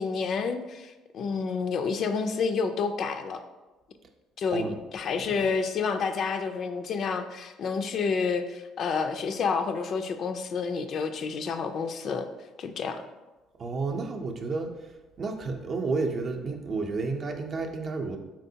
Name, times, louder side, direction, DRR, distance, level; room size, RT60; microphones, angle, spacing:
voice 1, 0.0-3.4 4.4-12.3 12.6-13.0, left 5 dB, 55° left, 8 dB, 0.3 m, -29 dB
voice 2, 13.6-18.2, right 3 dB, 45° right, 3 dB, 0.5 m, -31 dB
4.5 x 3.6 x 2.7 m, 1.1 s
supercardioid pair, 85°, 0 cm